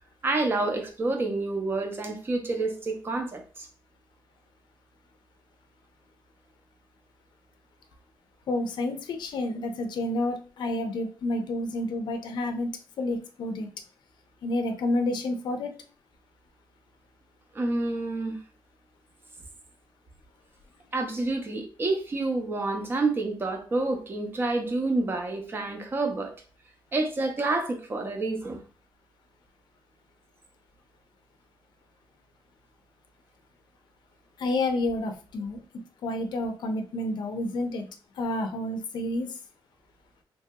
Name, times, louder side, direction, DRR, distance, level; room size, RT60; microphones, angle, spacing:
voice 1, 0.2-3.7 17.5-18.4 20.9-26.3 26.9-28.6, right 2 dB, 25° right, 0.5 m, -28 dB
voice 2, 8.5-12.7 13.0-13.7 14.4-15.7 34.4-35.6 36.0-37.8 38.1-39.4, left 2 dB, 60° left, 0.5 m, -29 dB
2.9 x 2.7 x 2.2 m
wide cardioid pair, 165°, 8 cm